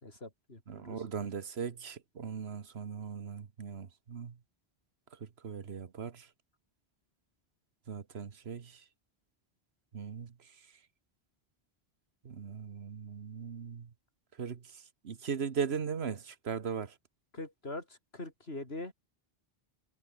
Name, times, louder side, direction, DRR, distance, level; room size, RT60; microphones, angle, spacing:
voice 1, 0.0-1.0 17.3-18.9, left 2 dB, 80° left, 4.9 m, -43 dB
voice 2, 0.7-4.3 5.4-6.1 7.9-8.7 9.9-10.3 12.2-13.9 14.4-14.6 15.0-16.9, right 6 dB, 90° right, 1.5 m, -38 dB
omnidirectional pair, 1.0 m